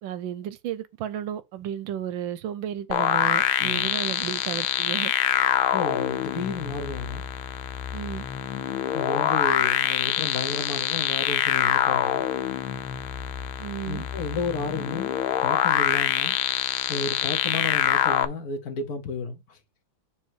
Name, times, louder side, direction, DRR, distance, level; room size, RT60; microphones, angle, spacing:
voice 1, 0.0-5.1 7.9-8.3 13.6-14.1, right 10 dB, 75° right, 1.3 m, -33 dB
sound 1, 2.9-18.3, left 11 dB, 90° left, 1.5 m, -25 dB
voice 2, 5.7-7.3 8.9-12.3 13.9-16.3 16.9-19.6, left 3 dB, 55° left, 1.3 m, -32 dB
7.1 x 3.3 x 4.7 m
omnidirectional pair, 2.2 m